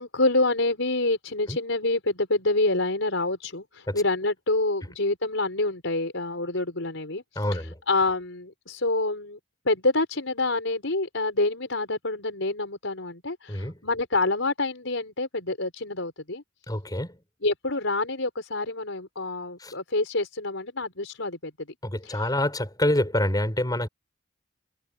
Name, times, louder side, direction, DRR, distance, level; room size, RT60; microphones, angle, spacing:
voice 1, 0.0-9.4 9.6-16.4 17.4-21.5 22.0-22.3, left 2 dB, 80° left, 4.7 m, -27 dB
voice 2, 7.4-7.7 13.5-13.8 16.7-17.2 19.6-19.7 21.8-23.9, left 1 dB, 20° left, 5.6 m, -26 dB
head